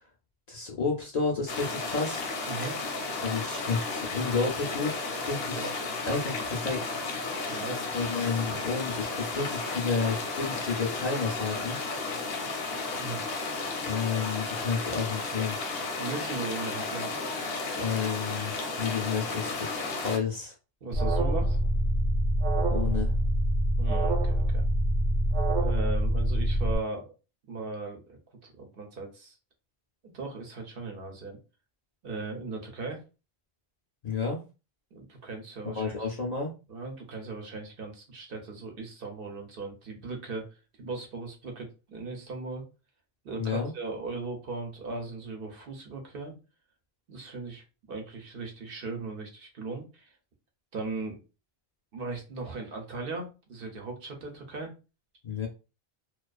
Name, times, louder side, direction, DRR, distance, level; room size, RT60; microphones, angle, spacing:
voice 1, 0.5-2.2 3.2-5.7 6.1-6.9 7.9-11.8 13.9-15.6 17.8-19.5 19.8-20.5 22.7-23.1 34.0-34.4 35.6-36.5 43.4-43.7 55.2-55.5, left 5 dB, 55° left, 0 dB, 0.5 m, -31 dB
sound 1, 1.5-20.2, left 3 dB, 80° left, 0.8 m, -33 dB
voice 2, 2.5-2.8 5.5-5.7 7.5-8.8 12.9-13.2 16.0-17.2 20.8-21.6 23.8-24.6 25.6-27.1 27.5-29.3 30.0-31.4 32.0-33.0 34.9-36.1 36.7-40.5 40.8-42.6 43.2-46.3 47.1-50.1 50.7-51.2 51.9-54.7, right 3 dB, 65° right, 3 dB, 0.9 m, -38 dB
Alarm, 20.9-26.7, right 1 dB, 45° right, 0.5 m, -25 dB
2.4 x 2.3 x 2.3 m, 0.31 s
omnidirectional pair, 1.0 m